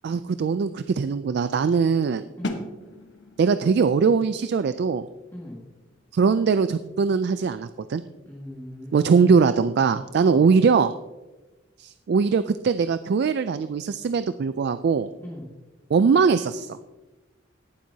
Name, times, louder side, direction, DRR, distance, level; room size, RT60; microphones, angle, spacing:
voice 1, 0.0-2.2 3.4-5.1 6.1-8.0 8.9-10.9 11.8-15.1 15.9-16.7, right 5 dB, 55° right, 12 dB, 0.3 m, -21 dB
sound 1, 2.4-8.2, left 1 dB, 60° left, 1.2 m, -40 dB
voice 2, 8.3-9.3 10.2-10.4 15.2-15.5, equal, 15° left, -5 dB, 1.9 m, -38 dB
18.0 x 7.5 x 2.8 m, 1.1 s
head